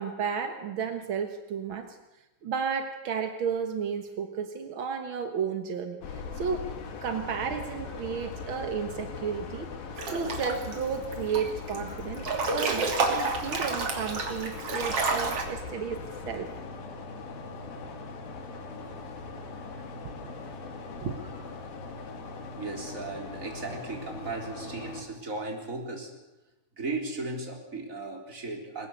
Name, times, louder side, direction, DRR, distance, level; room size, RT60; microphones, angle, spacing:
voice 1, 0.0-2.0 2.4-6.7 7.0-9.7 10.1-16.0 16.3-16.5 19.7-19.8 20.4-20.5 21.0-21.2, right 6 dB, 65° right, 7 dB, 1.3 m, -33 dB
sound 1, 6.0-25.0, left 4 dB, 80° left, 4.0 m, -40 dB
Breathing / Bathtub (filling or washing) / Splash splatter, 10.0-10.7 11.1-11.8 12.1-15.4, right 3 dB, 40° right, 3.6 m, -29 dB
voice 2, 22.6-26.1 26.8-28.9, right 3 dB, 20° right, 2 dB, 4.0 m, -36 dB
21.0 x 20.0 x 8.1 m, 0.99 s
omnidirectional pair, 4.1 m